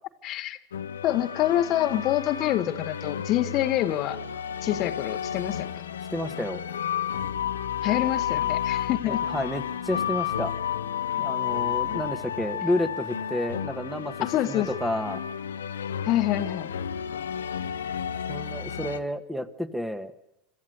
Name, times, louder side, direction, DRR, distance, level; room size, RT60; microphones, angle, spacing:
voice 1, 0.2-0.6 1.0-4.2 4.6-5.7 7.8-9.2 14.2-14.7 16.0-16.7, left 13 dB, 50° left, 10 dB, 1.1 m, -26 dB
sound 1, 0.7-19.0, left 9 dB, 85° left, 0.8 m, -31 dB
voice 2, 6.1-6.6 8.3-8.4 9.1-10.5 11.2-14.1 14.4-15.2 18.3-20.1, left 1 dB, 5° right, 11 dB, 1.4 m, -30 dB
26.5 x 13.0 x 8.0 m, 0.91 s
hypercardioid pair, 85°, 0 cm